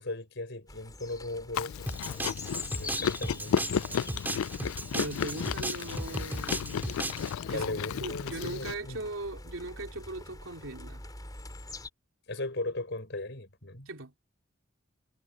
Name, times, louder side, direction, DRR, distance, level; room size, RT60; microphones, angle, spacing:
voice 1, 0.0-1.9 2.7-3.9 7.5-9.0 12.3-13.9, left 2 dB, 60° left, 6.5 m, -37 dB
sound 1, 0.7-11.9, left 3 dB, 20° left, 5.0 m, -45 dB
Chewing mastication, 1.5-8.7, left 8 dB, 90° left, 0.3 m, -33 dB
sound 2, 1.9-7.3, right 1 dB, 10° right, 3.9 m, -36 dB
voice 2, 4.9-7.0 7.5-11.0 13.9-14.1, right 2 dB, 80° right, 2.8 m, -39 dB
head